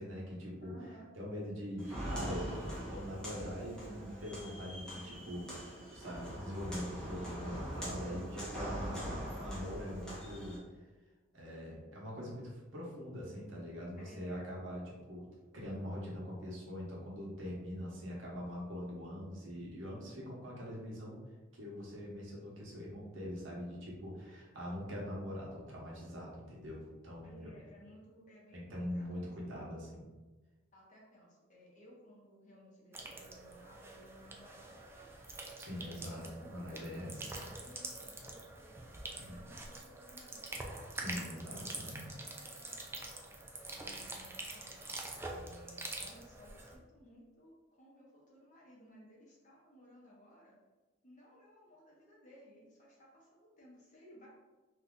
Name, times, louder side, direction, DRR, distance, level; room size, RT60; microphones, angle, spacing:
voice 1, 0.0-0.7 1.2-5.5 5.9-10.6 11.3-15.2 15.5-21.2 21.5-27.5 28.5-30.0 35.6-37.2 39.2-39.4 40.9-42.1, equal, 75° right, -4 dB, 1.0 m, -43 dB
voice 2, 0.6-1.1 8.0-8.5 13.3-13.4 14.0-14.5 27.2-29.7 30.7-35.2 35.9-38.7 39.1-40.6 41.1-45.0 45.3-50.6 51.0-54.3, equal, 40° left, -4 dB, 0.9 m, -58 dB
Walk footsteps, 1.8-10.6, equal, 5° left, 0.8 m, -42 dB
sound 1, 32.9-46.8, right 2 dB, 15° right, 0.3 m, -46 dB
2.7 x 2.4 x 3.6 m, 1.2 s
head